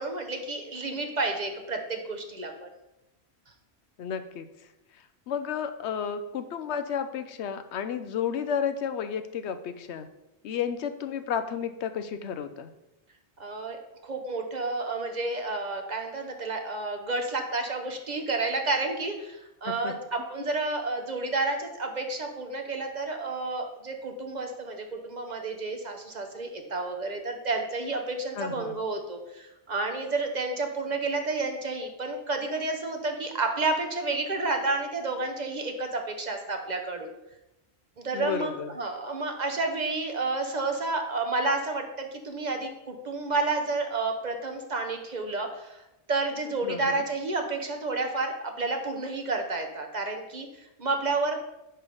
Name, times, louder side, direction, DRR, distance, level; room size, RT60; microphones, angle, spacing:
voice 1, 0.0-2.7 13.4-37.1 38.0-45.8 46.1-51.4, right 3 dB, 45° right, 4 dB, 1.0 m, -30 dB
voice 2, 4.0-4.5 5.3-10.1 10.4-12.7 19.7-19.9 28.4-28.7 38.1-38.7 46.6-47.0, left 7 dB, 80° left, 10 dB, 0.9 m, -32 dB
10.0 x 3.4 x 5.3 m, 0.92 s
omnidirectional pair, 1.1 m